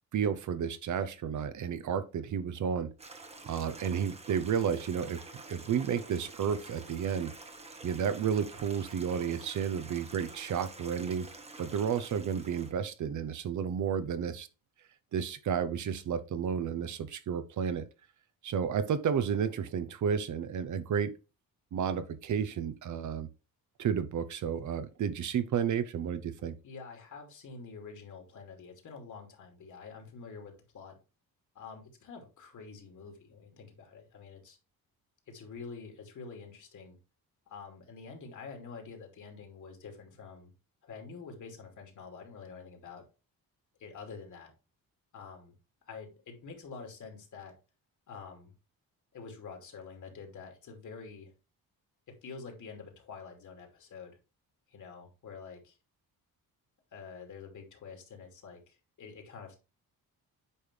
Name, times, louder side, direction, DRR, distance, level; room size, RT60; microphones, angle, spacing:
voice 1, 0.1-2.9 3.5-5.2 5.5-7.3 7.8-11.3 11.6-14.5 15.1-17.9 18.4-21.1 21.7-23.3 23.8-26.5, right 7 dB, 55° right, 0.8 m, -32 dB
Stream, 3.0-12.7, right 3 dB, 15° right, 1.0 m, -49 dB
voice 2, 26.6-31.0 31.5-34.6 35.3-37.0 37.5-40.5 40.8-43.0 43.8-44.5 45.1-45.5 45.9-47.5 48.1-48.5 49.1-51.3 52.2-54.2 54.7-55.8 56.9-59.6, left 5 dB, 55° left, 2.6 m, -47 dB
8.6 x 5.2 x 3.2 m
cardioid pair, 155°, 36 cm